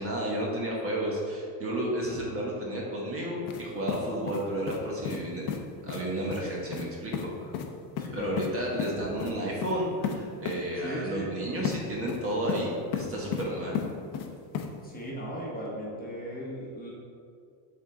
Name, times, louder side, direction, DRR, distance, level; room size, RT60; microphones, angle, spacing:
voice 1, 0.0-5.6 5.8-7.5 8.1-13.8, right 1 dB, 30° right, -3 dB, 1.2 m, -32 dB
sound 1, 3.5-3.6 3.9-4.8 5.0-5.2 5.5-5.6 5.9-6.0 6.3-6.4 6.7-6.9 7.1-7.3 7.5-7.7 8.0-8.5 8.8-8.9 9.2-9.3 9.6-9.7 10.0-10.2 10.4-10.6 11.6-11.8 12.1-12.6 12.9-13.4 13.7-14.3 14.5-14.7, left 8 dB, 45° left, 0.7 m, -32 dB
voice 2, 8.0-8.4 10.8-11.3 14.8-16.9, equal, 20° left, -4 dB, 1.3 m, -37 dB
7.1 x 3.7 x 3.8 m, 2.4 s
supercardioid pair, 120°, 48 cm